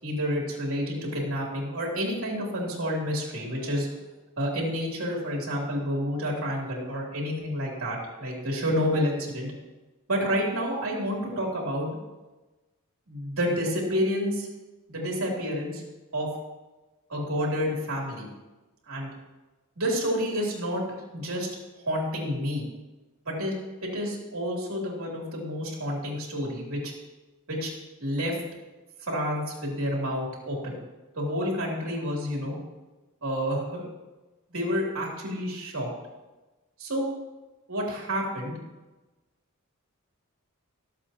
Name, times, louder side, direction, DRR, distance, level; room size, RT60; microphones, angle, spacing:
voice 1, 0.0-3.9 4.4-9.5 10.1-11.9 13.1-14.5 14.9-15.8 16.1-16.3 17.1-18.3 18.9-19.1 19.8-20.8 21.1-21.5 21.8-22.6 23.2-23.5 23.8-26.9 27.5-27.7 28.0-28.4 29.0-30.8 31.1-32.6 33.2-33.9 34.5-35.9 36.8-37.1 37.7-38.6, equal, 65° right, -2 dB, 3.3 m, -29 dB
18.5 x 7.8 x 3.0 m, 1.1 s
head